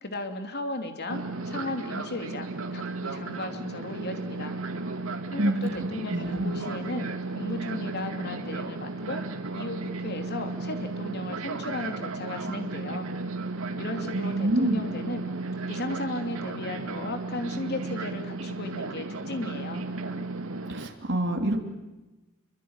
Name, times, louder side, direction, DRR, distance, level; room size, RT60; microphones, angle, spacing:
voice 1, 0.0-4.6 5.3-9.2 9.5-13.1 13.8-15.2 15.7-19.9, left 2 dB, 50° left, 6 dB, 3.0 m, -35 dB
Fixed-wing aircraft airplane, 1.1-20.9, right 3 dB, 80° right, 2.2 m, -34 dB
voice 2, 5.4-6.6 14.1-14.8 20.7-21.6, right 1 dB, 60° right, 3 dB, 3.2 m, -27 dB
27.5 x 23.5 x 9.0 m, 1.1 s
head